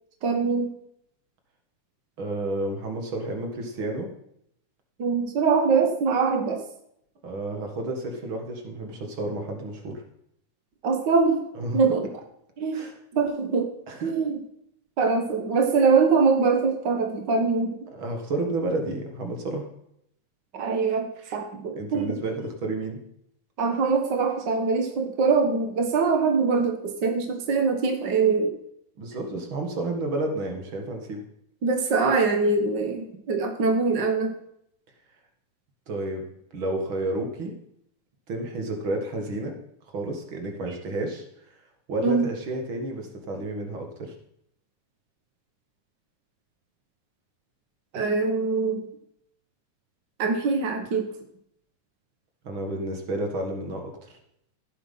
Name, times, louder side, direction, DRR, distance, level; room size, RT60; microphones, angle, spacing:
voice 1, 0.2-0.7 5.0-6.6 10.8-11.4 11.7-12.1 12.6-12.8 13.1-13.7 14.0-14.4 15.0-17.8 20.5-22.2 23.6-28.5 31.6-34.3 42.0-42.2 47.9-48.8 50.2-51.1, right 4 dB, 65° right, 4 dB, 1.1 m, -23 dB
voice 2, 2.2-4.1 7.2-10.0 11.6-11.8 12.7-13.0 13.9-14.1 17.9-19.7 21.8-23.0 29.0-31.2 35.9-36.2 36.5-37.5 38.3-39.6 39.9-41.6 41.9-44.1 52.4-54.2, right 2 dB, 45° right, 3 dB, 2.2 m, -31 dB
15.0 x 8.2 x 5.6 m, 0.75 s
omnidirectional pair, 3.9 m